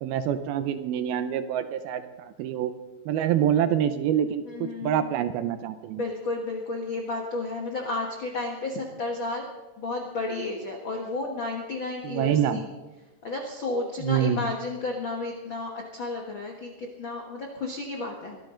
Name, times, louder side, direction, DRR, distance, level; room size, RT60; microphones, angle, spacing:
voice 1, 0.0-2.7 3.1-6.0 12.0-12.6 14.0-14.4, right 9 dB, 80° right, 10 dB, 2.3 m, -26 dB
voice 2, 4.4-5.1 6.0-9.5 9.8-12.7 13.2-18.4, left 3 dB, 85° left, 1 dB, 1.0 m, -32 dB
24.0 x 13.5 x 3.8 m, 1.2 s
omnidirectional pair, 4.8 m